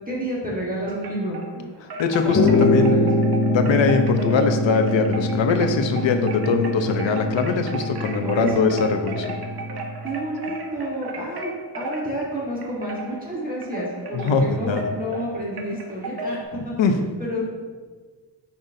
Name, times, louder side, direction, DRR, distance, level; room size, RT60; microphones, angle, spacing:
voice 1, 0.1-1.7 2.2-3.3 8.2-8.7 10.0-16.4 16.6-16.7 17.2-17.4, equal, 20° right, -6 dB, 1.5 m, -29 dB
Wind chime, 0.9-1.5 1.9-16.4, right 1 dB, 60° right, 0.9 m, -35 dB
voice 2, 2.0-3.0 3.5-9.4 14.1-14.8 16.8-17.0, left 5 dB, 80° left, 6 dB, 0.8 m, -22 dB
sound 1, 2.3-10.0, left 2 dB, 35° left, 0.6 m, -23 dB
8.9 x 5.9 x 2.7 m, 1.5 s
wide cardioid pair, 145°, 45 cm